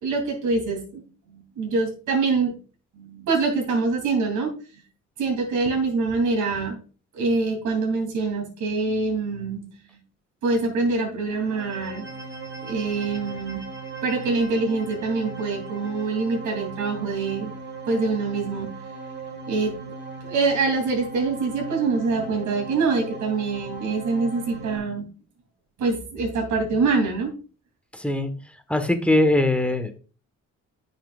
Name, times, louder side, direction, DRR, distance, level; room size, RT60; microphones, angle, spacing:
voice 1, 0.0-1.0 1.3-2.6 2.9-4.5 5.2-6.8 7.1-9.6 10.4-12.1 12.6-13.6 14.0-17.5 17.9-18.7 19.5-19.7 20.2-25.1 25.8-27.3, right 4 dB, 75° right, 1 dB, 2.9 m, -25 dB
sound 1, 11.2-24.8, right 4 dB, 40° right, 1.4 m, -38 dB
voice 2, 27.9-28.3 28.7-30.0, left 1 dB, 5° left, 8 dB, 1.3 m, -21 dB
9.9 x 6.4 x 2.4 m, 0.36 s
cardioid pair, 90°, 30 cm